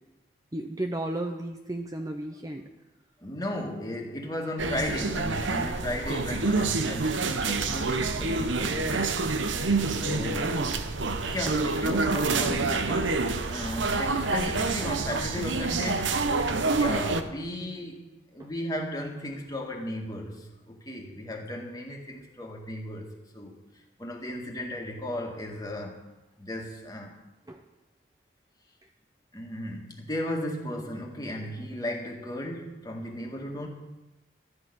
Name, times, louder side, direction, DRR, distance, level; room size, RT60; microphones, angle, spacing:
voice 1, 0.5-2.7 10.3-10.8 18.4-18.5 27.5-27.6, right 1 dB, 20° right, 4 dB, 0.7 m, -34 dB
voice 2, 3.2-9.3 9.9-10.7 11.2-13.2 13.5-16.3 16.7-18.1 18.3-23.1 23.3-23.6 24.0-26.0 26.4-27.2 29.3-33.7, left 1 dB, 20° left, 1 dB, 1.9 m, -35 dB
sound 1, 4.6-17.2, right 3 dB, 90° right, 1.0 m, -27 dB
13.5 x 6.7 x 9.8 m, 1.0 s
head